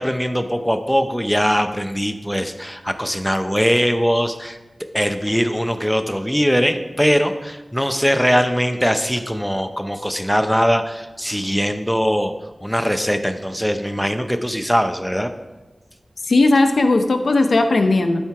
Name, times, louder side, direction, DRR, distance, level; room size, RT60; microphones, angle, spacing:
voice 1, 0.0-4.6 4.9-12.3 12.6-15.3, equal, ahead, 8 dB, 0.6 m, -21 dB
voice 2, 16.2-18.2, left 2 dB, 85° left, 6 dB, 0.7 m, -16 dB
12.5 x 4.4 x 4.7 m, 1.1 s
wide cardioid pair, 80°, 0 cm